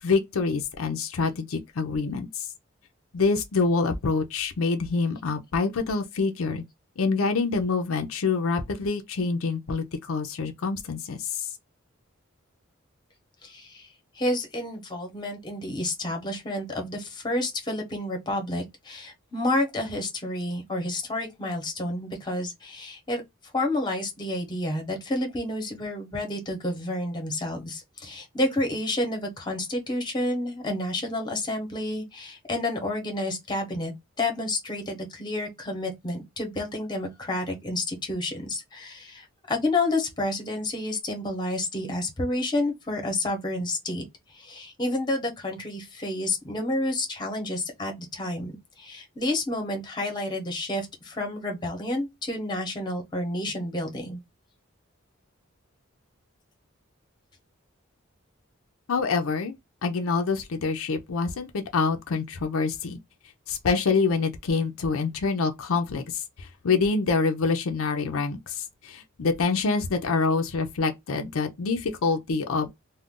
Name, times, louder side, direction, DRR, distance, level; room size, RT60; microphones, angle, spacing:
voice 1, 0.0-2.5 3.1-6.6 7.0-11.5 58.9-59.5 59.8-63.0 63.5-72.7, left 4 dB, 80° left, 0.5 m, -26 dB
voice 2, 13.4-13.9 14.1-23.2 23.5-44.0 44.3-54.2, left 1 dB, 20° left, 0.8 m, -30 dB
2.4 x 2.2 x 3.5 m
head